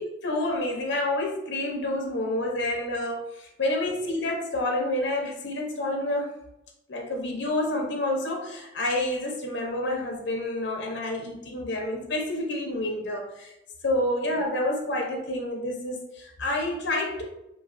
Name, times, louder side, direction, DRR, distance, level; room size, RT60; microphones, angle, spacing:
voice 1, 0.0-6.3 6.9-13.5 13.8-17.2, left 1 dB, 70° left, 1 dB, 0.6 m, -28 dB
3.1 x 2.5 x 2.5 m, 0.88 s
head